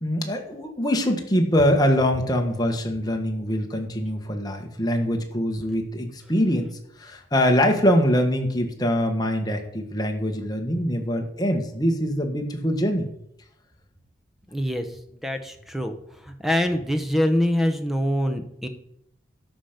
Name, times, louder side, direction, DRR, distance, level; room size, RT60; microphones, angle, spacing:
voice 1, 0.0-6.7 7.0-13.1, equal, 20° left, 3 dB, 1.4 m, -23 dB
voice 2, 14.5-18.7, equal, ahead, 7 dB, 0.9 m, -25 dB
13.5 x 6.0 x 5.2 m, 0.74 s
head